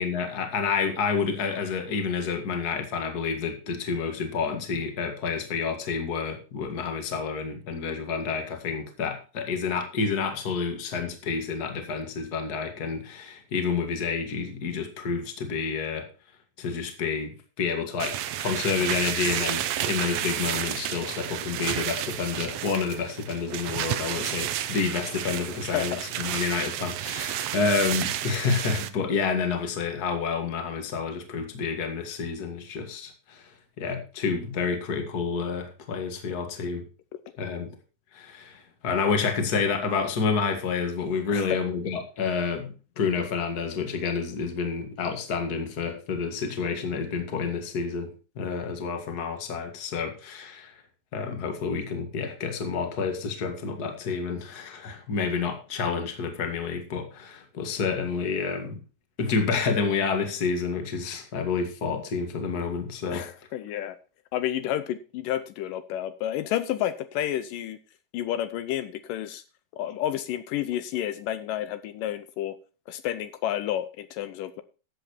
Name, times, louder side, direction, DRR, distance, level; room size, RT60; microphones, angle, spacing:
voice 1, 0.0-16.1 16.6-18.1 18.4-33.4 33.8-36.9 37.4-37.7 38.1-50.7 51.1-58.8 59.2-63.2, left 5 dB, 35° left, 6 dB, 1.9 m, -29 dB
sound 1, 18.0-28.9, right 12 dB, 75° right, 1.6 m, -31 dB
voice 2, 63.1-64.0 64.3-67.8 68.1-69.4 69.7-72.6 72.9-74.6, left 12 dB, 80° left, 11 dB, 2.3 m, -30 dB
13.5 x 7.9 x 4.5 m, 0.33 s
omnidirectional pair, 3.9 m